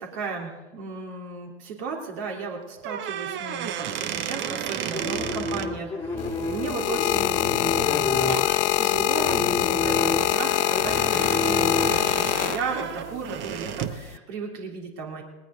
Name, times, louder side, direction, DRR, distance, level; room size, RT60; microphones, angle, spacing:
voice 1, 0.0-8.2 8.7-15.2, right 4 dB, 55° right, 0 dB, 3.2 m, -35 dB
sound 1, 2.8-5.7 7.8-8.0 8.3-8.6 9.1-14.0, right 10 dB, 30° right, 0.9 m, -33 dB
sound 2, 4.9-12.4, left 2 dB, 10° left, 2.0 m, -30 dB
sound 3, 6.2-13.0 13.9-14.2, left 16 dB, 70° left, 0.5 m, -24 dB
19.5 x 19.0 x 3.8 m, 1.2 s
hypercardioid pair, 110°, 36 cm